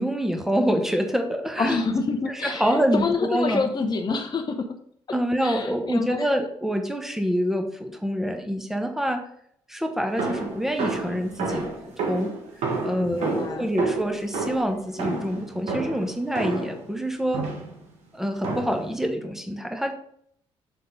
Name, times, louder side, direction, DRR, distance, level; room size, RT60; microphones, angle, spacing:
voice 1, 0.0-1.8 2.3-3.7 5.1-9.2 9.7-11.7 12.1-12.3 12.8-17.4 18.1-19.9, equal, 5° right, 4 dB, 1.2 m, -26 dB
voice 2, 1.6-4.8 5.4-6.3 12.8-13.7, left 4 dB, 35° left, 4 dB, 0.8 m, -27 dB
sound 1, 10.2-16.8 17.3-17.8 18.4-18.9, right 3 dB, 70° right, 1.4 m, -30 dB
7.0 x 3.8 x 3.6 m, 0.66 s
supercardioid pair, 60°, 12 cm